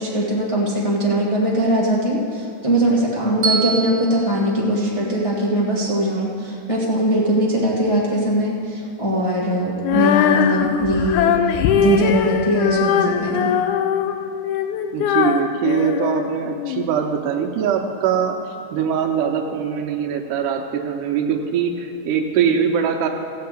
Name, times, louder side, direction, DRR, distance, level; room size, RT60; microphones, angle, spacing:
voice 1, 0.0-11.3 11.8-13.5, right 1 dB, 40° left, -5 dB, 0.4 m, -20 dB
Bell, 3.4-5.6, right 5 dB, 50° right, 1.7 m, -27 dB
Female singing, 9.8-16.9, left 9 dB, 80° left, 2.0 m, -20 dB
voice 2, 14.9-23.1, right 7 dB, 85° right, 1 dB, 2.3 m, -22 dB
15.0 x 5.8 x 8.1 m, 2.8 s
omnidirectional pair, 3.7 m